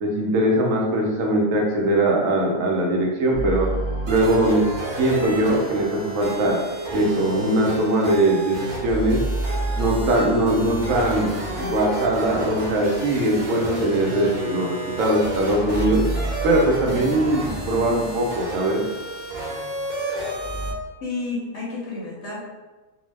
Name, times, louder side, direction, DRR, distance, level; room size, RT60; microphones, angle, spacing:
voice 1, 0.0-3.7 4.1-4.6 5.0-6.6 6.9-9.2 9.8-16.0 16.4-18.8, right 1 dB, 70° right, -1 dB, 0.9 m, -21 dB
evolving synth, 3.3-8.3 8.6-14.0 14.7-20.7, right 1 dB, 20° left, 0.4 m, -32 dB
sound 1, 4.1-20.7, right 1 dB, 50° right, 0.5 m, -32 dB
voice 2, 21.0-22.4, left 3 dB, 65° left, -4 dB, 0.8 m, -30 dB
2.6 x 2.0 x 3.2 m, 1.2 s
omnidirectional pair, 1.5 m